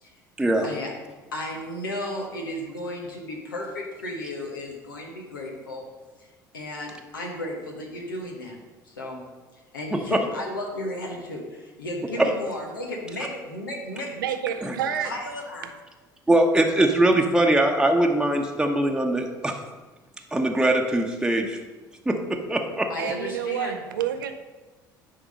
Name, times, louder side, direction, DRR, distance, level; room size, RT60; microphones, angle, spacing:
voice 1, 0.4-0.7 9.9-10.0 12.2-12.3 14.6-14.7 16.3-19.6 20.3-21.6 22.1-22.9, right 1 dB, 5° right, 2 dB, 1.0 m, -22 dB
voice 2, 1.3-5.8 6.5-8.6 8.8-9.2 9.5-14.2 15.0-15.7 22.9-23.8, left 1 dB, 85° left, -1 dB, 1.2 m, -34 dB
voice 3, 14.2-15.1 23.0-24.3, right 9 dB, 80° right, 8 dB, 0.5 m, -28 dB
9.9 x 3.9 x 5.3 m, 1.2 s
hypercardioid pair, 60°, 11 cm